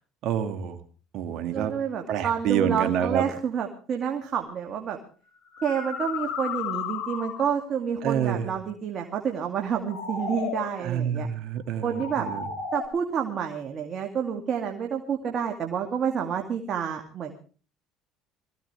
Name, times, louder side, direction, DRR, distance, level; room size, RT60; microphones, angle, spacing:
voice 1, 0.2-0.8 1.1-1.7 2.1-3.2 8.0-8.5 10.8-12.5, right 9 dB, 65° right, 8 dB, 2.1 m, -27 dB
voice 2, 1.5-5.0 5.6-11.3 11.8-12.3 12.7-17.3, right 7 dB, 50° right, 2 dB, 2.4 m, -29 dB
sound 1, 4.4-4.6 5.4-7.7 9.6-10.8 11.7-12.9, left 6 dB, 65° left, 4.1 m, -34 dB
22.0 x 15.5 x 3.4 m, 0.38 s
supercardioid pair, 85°, 0 cm